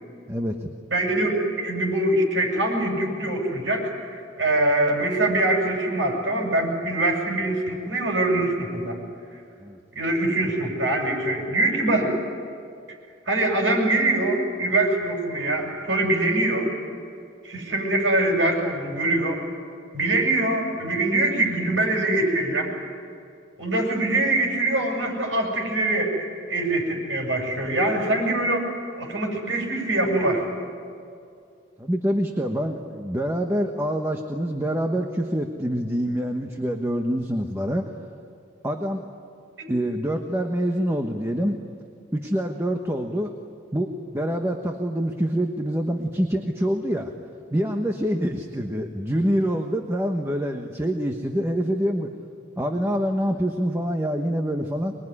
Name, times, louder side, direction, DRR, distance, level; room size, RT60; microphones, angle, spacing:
voice 1, 0.3-0.7 9.6-9.8 31.8-37.9 38.6-39.0 39.7-41.6 42.1-43.3 43.7-47.1 47.5-52.1 52.6-55.0, equal, 15° right, 3 dB, 1.2 m, -26 dB
voice 2, 0.9-9.0 10.0-12.2 13.3-16.7 17.4-19.4 19.9-22.7 23.6-26.1 26.5-28.7 29.0-30.4, right 2 dB, 75° right, 1 dB, 7.3 m, -23 dB
25.5 x 21.5 x 9.9 m, 2.4 s
head